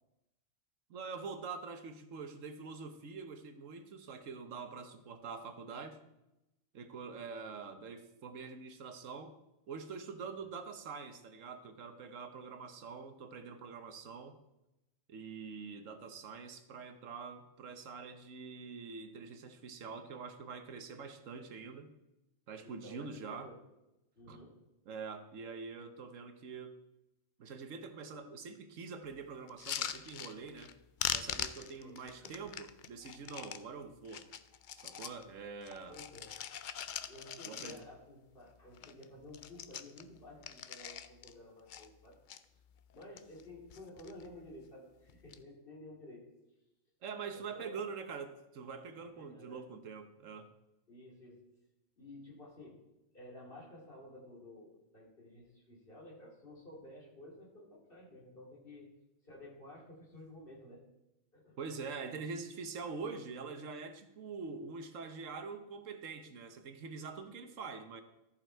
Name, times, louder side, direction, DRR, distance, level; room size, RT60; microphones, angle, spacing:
voice 1, 0.9-6.0 6.7-9.3 9.7-14.4 15.1-21.9 22.5-23.5 24.3-24.4 24.9-26.7 27.4-30.7 31.1-34.3 34.8-36.0 37.4-37.8 47.0-50.5 61.6-68.0, right 5 dB, 75° right, 8 dB, 1.3 m, -45 dB
voice 2, 22.6-23.6 24.1-24.6 28.1-28.3 31.6-32.4 35.9-36.4 37.1-42.2 42.9-46.3 47.3-47.8 49.0-49.7 50.9-51.4 52.0-52.8 53.1-58.9 59.2-60.9 61.3-61.6, left 1 dB, 45° left, -3 dB, 2.9 m, -53 dB
sound 1, 29.5-30.7 31.0-33.6 34.1-35.2 35.6-38.1 38.4-38.5 38.7-39.0 39.3-41.3 41.7-42.4 42.9-43.4 43.7-44.3 45.1-45.4, left 9 dB, 70° left, 0.4 m, -41 dB
14.0 x 5.7 x 4.5 m, 0.93 s
omnidirectional pair, 1.4 m